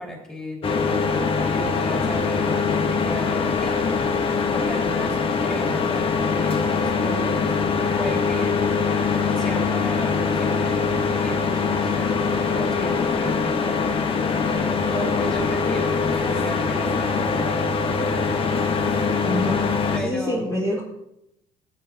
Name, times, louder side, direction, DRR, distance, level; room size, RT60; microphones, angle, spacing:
voice 1, 0.0-8.5 9.4-12.0 12.6-14.1 14.9-17.7 19.9-20.5, equal, 5° left, -2 dB, 3.2 m, -35 dB
sound 1, 0.6-20.0, left 5 dB, 40° left, 1.3 m, -23 dB
voice 2, 19.2-19.7 20.0-20.8, left 1 dB, 25° left, -5 dB, 2.3 m, -26 dB
16.0 x 8.1 x 2.8 m, 0.82 s
cardioid pair, 95°, 14 cm